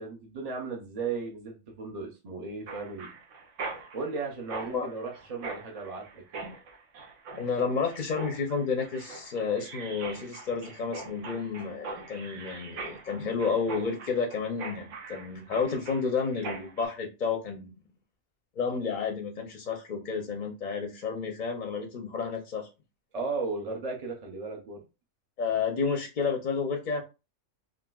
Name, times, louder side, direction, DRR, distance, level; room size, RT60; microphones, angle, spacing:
voice 1, 0.0-3.1 3.9-6.4 23.1-24.8, right 4 dB, 45° right, 0 dB, 0.5 m, -36 dB
Mechanisms, 2.7-16.9, right 3 dB, 80° right, 1.1 m, -42 dB
voice 2, 7.3-17.8 18.6-22.7 25.4-27.0, left 5 dB, 55° left, 3 dB, 0.5 m, -31 dB
3.7 x 2.4 x 2.3 m, 0.28 s
omnidirectional pair, 1.3 m